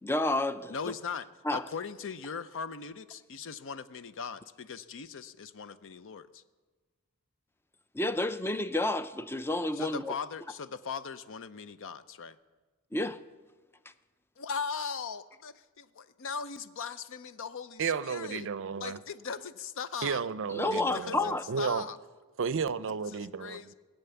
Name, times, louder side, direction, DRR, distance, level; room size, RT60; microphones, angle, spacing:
voice 1, 0.0-0.7 1.4-1.6 7.9-10.1 12.9-13.2 20.5-21.4, left 2 dB, 10° left, 0.5 m, -30 dB
voice 2, 0.7-1.3 1.5-6.4 9.7-12.4 14.4-18.5 18.8-20.2 20.7-22.0 23.4-23.7, left 6 dB, 60° left, 0.6 m, -39 dB
voice 3, 17.8-19.0 20.0-21.8 22.4-23.7, right 6 dB, 60° right, 0.5 m, -33 dB
20.0 x 8.1 x 6.9 m
head